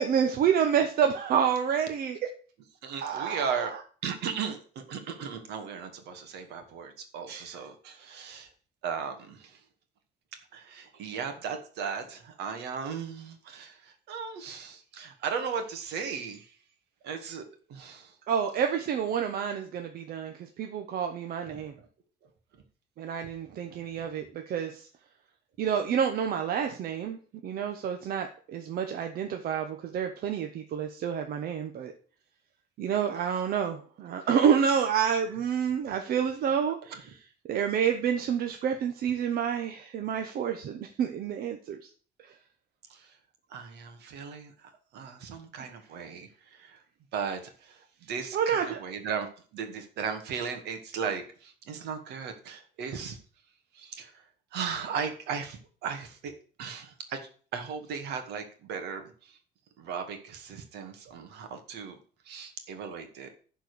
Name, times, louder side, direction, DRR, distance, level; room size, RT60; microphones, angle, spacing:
voice 1, 0.0-2.2 3.0-3.7 18.3-21.7 23.0-24.9 25.6-27.2 27.4-31.9 32.8-37.0 37.4-41.9 42.2-42.3 48.3-48.8, right 8 dB, 60° right, 5 dB, 1.0 m, -28 dB
voice 2, 2.8-3.7 4.0-8.5 8.8-9.6 10.5-16.6 17.0-17.4 17.7-18.1 21.5-21.7 23.9-24.0 35.9-36.0 42.9-43.2 43.5-46.8 47.1-49.3 49.5-53.2 53.7-54.2 54.5-56.3 56.6-57.2 57.5-59.4 59.8-62.0 62.3-63.3, right 6 dB, 80° right, 7 dB, 2.1 m, -36 dB
11.0 x 4.6 x 6.9 m, 0.42 s
cardioid pair, 110°, 17 cm